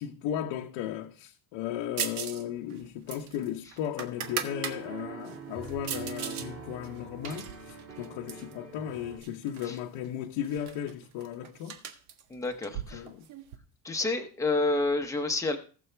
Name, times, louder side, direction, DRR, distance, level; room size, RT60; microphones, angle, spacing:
voice 1, 0.0-11.8 12.9-13.3, left 10 dB, 90° left, 1.0 m, -36 dB
sound 1, 2.0-2.4 2.7-4.8 5.2-6.5 6.8-8.5 9.2-9.8 10.0-10.1 10.4-13.6, right 9 dB, 85° right, 1.6 m, -38 dB
sound 2, 4.2-9.2, right 6 dB, 30° right, 2.7 m, -43 dB
voice 2, 12.3-13.0 13.8-15.6, left 2 dB, 5° left, 0.9 m, -29 dB
18.5 x 7.1 x 3.3 m
cardioid pair, 180°, 46 cm